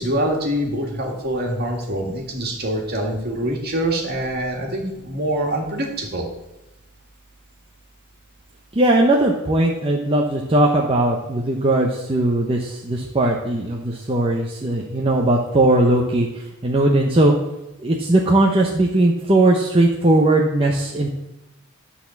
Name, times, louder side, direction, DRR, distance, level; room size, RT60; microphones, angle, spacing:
voice 1, 0.0-6.3, right 1 dB, 45° right, 0 dB, 2.0 m, -25 dB
voice 2, 8.7-16.3 16.6-17.3 17.8-21.1, right 1 dB, 25° right, -1 dB, 0.8 m, -18 dB
10.5 x 4.2 x 7.1 m, 0.93 s
head